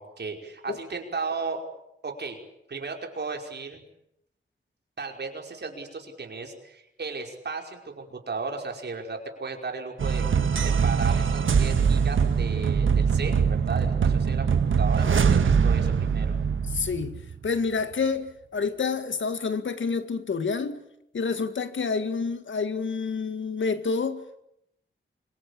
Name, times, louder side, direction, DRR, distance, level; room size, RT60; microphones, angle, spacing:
voice 1, 0.0-1.7 2.0-2.4 2.7-3.8 5.0-10.2 10.6-14.5 14.8-16.3, right 4 dB, 60° right, 5.4 m, -35 dB
sound 1, 10.0-17.5, right 6 dB, 85° right, 1.7 m, -23 dB
voice 2, 16.7-20.8 21.1-24.4, left 5 dB, 75° left, 2.0 m, -28 dB
27.0 x 24.0 x 8.7 m
wide cardioid pair, 120°, 20 cm